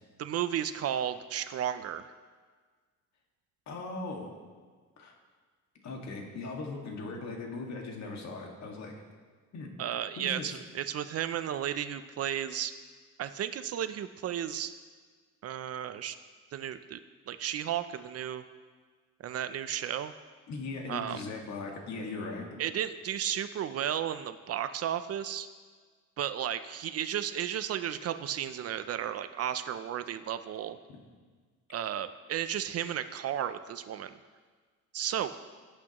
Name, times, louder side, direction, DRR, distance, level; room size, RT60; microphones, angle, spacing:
voice 1, 0.2-2.1 9.8-12.7 13.2-14.8 15.4-16.2 16.5-17.0 17.3-18.4 19.2-20.1 20.9-21.2 22.6-25.5 26.2-30.8 31.7-34.2 34.9-35.4, right 10 dB, 50° right, 11 dB, 0.5 m, -33 dB
voice 2, 3.7-4.3 5.0-5.1 5.8-8.9 9.5-9.7 10.2-10.6 20.5-22.5 30.9-31.0, left 3 dB, 60° left, 1 dB, 1.9 m, -39 dB
18.0 x 8.5 x 3.0 m, 1.5 s
cardioid pair, 160°, 31 cm